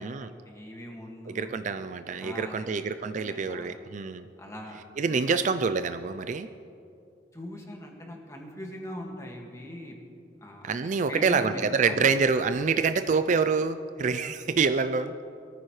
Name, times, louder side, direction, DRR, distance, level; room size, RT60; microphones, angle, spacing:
voice 1, 0.0-1.6 2.2-2.8 3.2-3.8 4.4-4.8 5.1-5.5 7.3-10.0 10.4-12.1, equal, 15° left, 0 dB, 1.9 m, -41 dB
voice 2, 1.3-4.3 5.0-6.5 10.6-15.1, right 5 dB, 45° right, 10 dB, 0.4 m, -26 dB
22.0 x 14.0 x 3.2 m, 2.6 s
head